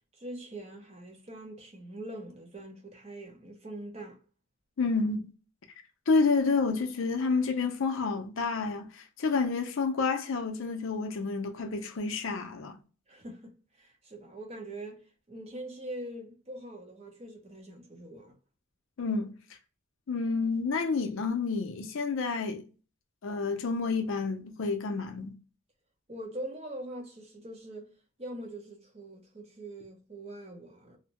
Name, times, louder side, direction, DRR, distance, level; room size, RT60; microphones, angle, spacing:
voice 1, 0.2-4.2 13.1-13.5 13.8-18.3 26.1-27.9 28.2-31.0, right 1 dB, 30° right, 0.6 m, -43 dB
voice 2, 4.8-5.3 6.1-12.8 19.0-19.3 20.1-22.7 23.2-25.4, left 4 dB, 60° left, 0.5 m, -29 dB
2.6 x 2.1 x 2.8 m
head